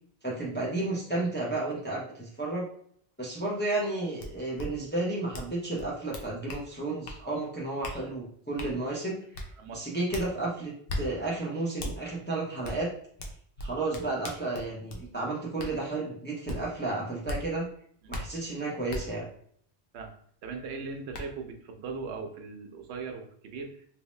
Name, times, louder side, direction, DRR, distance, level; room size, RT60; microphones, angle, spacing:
voice 1, 0.2-2.7 3.2-9.2 9.7-12.9 13.6-17.7 18.1-19.3, right 2 dB, 15° left, -4 dB, 0.5 m, -32 dB
sound 1, 4.2-4.3 4.6-4.7 5.3-5.5 5.8-6.6 7.0-7.2 7.8-8.0 8.6-8.7 9.3-9.5 10.1-10.3 10.9-11.0 11.8-11.9 12.6-12.8 13.2-15.0 15.6-15.7 16.5-16.6 17.3-17.4 18.1-18.2 18.9-19.0 20.5-20.6 21.1-21.2, left 1 dB, 60° left, 0.8 m, -36 dB
voice 2, 20.4-23.9, right 4 dB, 75° right, 3 dB, 0.9 m, -39 dB
3.0 x 2.7 x 3.1 m, 0.62 s
omnidirectional pair, 1.1 m